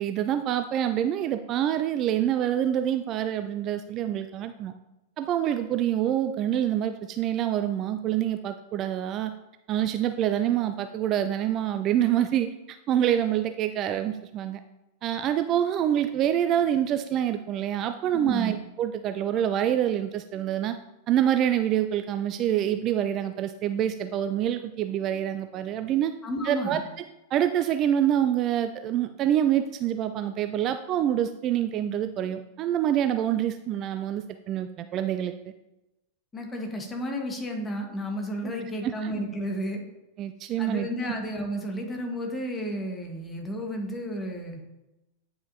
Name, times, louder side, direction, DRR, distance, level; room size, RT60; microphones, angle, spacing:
voice 1, 0.0-4.7 5.2-9.3 9.7-14.6 15.0-20.7 21.1-26.1 26.4-26.8 27.3-35.3 38.8-39.1 40.2-40.9, right 10 dB, 35° right, 9 dB, 0.3 m, -26 dB
voice 2, 18.1-18.5 26.2-26.8 36.3-39.8 40.6-44.6, equal, 15° left, 2 dB, 1.5 m, -32 dB
9.3 x 5.6 x 2.8 m, 0.96 s
figure-of-eight pair, 90°, 0 cm